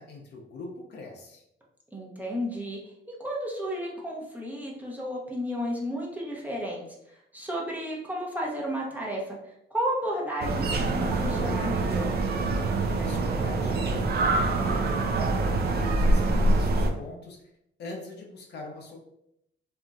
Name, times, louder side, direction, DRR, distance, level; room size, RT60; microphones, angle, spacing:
voice 1, 0.0-1.4 13.0-15.4 15.7-17.5 17.8-19.0, left 2 dB, 60° left, 1 dB, 0.6 m, -42 dB
voice 2, 1.9-2.8 3.2-6.8 7.3-9.4 9.7-12.1, equal, 10° right, -3 dB, 0.7 m, -32 dB
sound 1, 10.4-16.9, right 2 dB, 55° right, 0.4 m, -25 dB
2.8 x 2.5 x 2.3 m, 0.78 s
cardioid pair, 90°, 20 cm